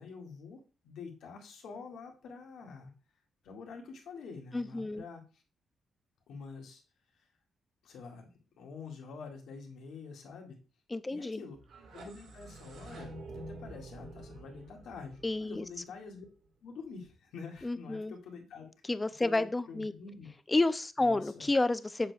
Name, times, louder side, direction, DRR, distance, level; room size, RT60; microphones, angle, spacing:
voice 1, 0.0-2.9 3.4-5.2 6.3-6.8 7.8-8.3 8.6-10.6 11.1-11.6 11.9-16.3 16.6-18.7 19.2-20.3 21.0-21.5, left 5 dB, 85° left, 1 dB, 1.9 m, -47 dB
voice 2, 4.5-5.0 10.9-11.4 15.2-15.7 17.6-18.1 18.8-19.9 20.5-22.1, left 2 dB, 15° left, 13 dB, 0.4 m, -30 dB
sound 1, 11.5-16.4, right 2 dB, 65° right, 1.8 m, -48 dB
7.5 x 6.6 x 2.3 m, 0.34 s
wide cardioid pair, 165°, 0 cm